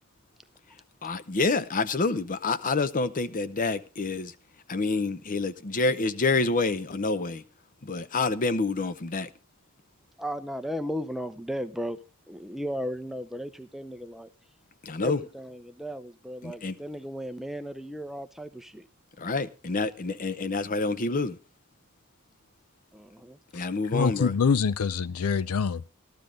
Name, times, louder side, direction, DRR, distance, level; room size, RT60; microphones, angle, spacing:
voice 1, 1.0-4.3 4.7-7.4 7.8-9.3 14.8-15.2 16.4-16.8 19.2-21.4 23.5-24.3, left 3 dB, 40° left, 0.7 m, -27 dB
voice 2, 10.2-12.0 12.3-14.3 15.0-18.9 22.9-23.4, equal, ahead, 0.5 m, -35 dB
voice 3, 23.9-25.9, left 5 dB, 75° left, 0.5 m, -25 dB
13.5 x 12.5 x 3.8 m
head